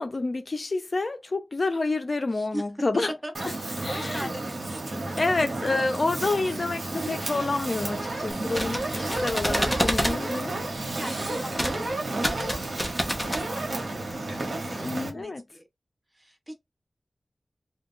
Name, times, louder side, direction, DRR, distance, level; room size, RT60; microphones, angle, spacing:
voice 1, 0.0-3.1 3.8-4.3 5.2-10.5 14.8-15.4, left 3 dB, 55° left, 0.5 m, -28 dB
voice 2, 2.3-2.6 3.2-4.9 10.8-15.7 16.1-16.6, equal, 20° right, 1.1 m, -41 dB
Fire, 3.3-15.1, right 2 dB, 75° right, 1.0 m, -32 dB
sound 1, 5.5-15.2, right 1 dB, 55° right, 0.9 m, -49 dB
sound 2, 8.3-10.2 11.5-11.8 12.1-13.4, equal, 5° left, 0.9 m, -28 dB
2.3 x 2.3 x 3.7 m
cardioid pair, 50°, 0 cm